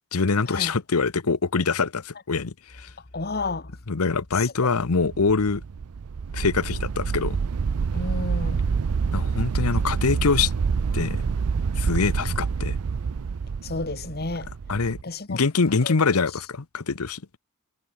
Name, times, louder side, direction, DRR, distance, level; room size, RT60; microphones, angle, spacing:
voice 1, 0.1-2.9 3.9-5.6 6.3-7.4 9.1-10.5 10.9-11.2 11.8-12.8 14.7-15.0 15.3-17.2, left 4 dB, 85° left, 0.9 m, -24 dB
voice 2, 3.1-3.7 4.3-4.7 7.9-8.6 13.6-14.5 15.0-15.4 15.8-15.9 16.3-16.4, left 3 dB, 45° left, 1.9 m, -31 dB
sound 1, 5.0-15.0, right 5 dB, 85° right, 0.5 m, -27 dB
head